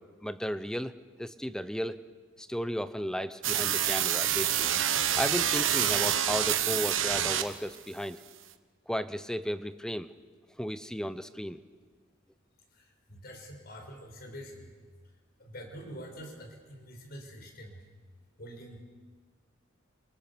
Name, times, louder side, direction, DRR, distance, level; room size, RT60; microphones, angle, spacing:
voice 1, 0.0-2.0 2.4-4.7 5.2-8.2 8.9-10.1 10.6-11.6, equal, 5° left, 12 dB, 0.8 m, -34 dB
sound 1, 3.4-7.8, right 10 dB, 70° right, 1.3 m, -27 dB
voice 2, 12.7-14.7 15.4-17.8 18.4-18.8, equal, 50° left, 3 dB, 5.4 m, -46 dB
28.5 x 26.0 x 6.9 m, 1.5 s
head